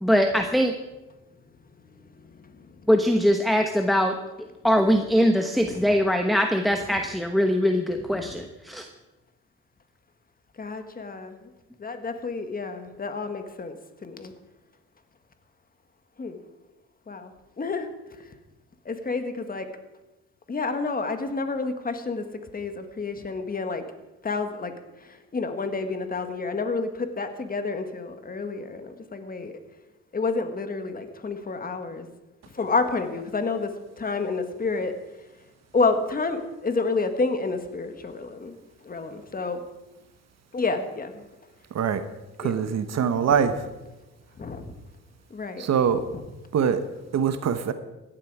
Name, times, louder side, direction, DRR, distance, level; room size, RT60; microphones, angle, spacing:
voice 1, 0.0-0.7 2.9-4.2 4.6-8.9, equal, ahead, 1.0 m, -22 dB
voice 2, 2.2-3.0 4.4-4.5 5.6-5.8 6.7-7.1 7.9-8.3 10.6-11.4 11.8-13.7 14.0-14.3 16.2-16.4 17.1-17.9 18.8-19.7 20.5-22.2 22.5-23.8 24.2-24.7 25.0-29.5 30.1-32.1 32.5-33.7 34.0-34.9 35.7-38.6 38.8-39.6 40.5-41.2 42.4-42.7 43.2-43.5 44.4-44.7 45.3-45.7 46.1-46.3, left 4 dB, 30° left, 1.7 m, -30 dB
voice 3, 42.4-43.5 45.6-46.0 46.5-46.8 47.1-47.7, right 7 dB, 60° right, 1.0 m, -23 dB
16.0 x 11.5 x 4.8 m
cardioid pair, 90°, 30 cm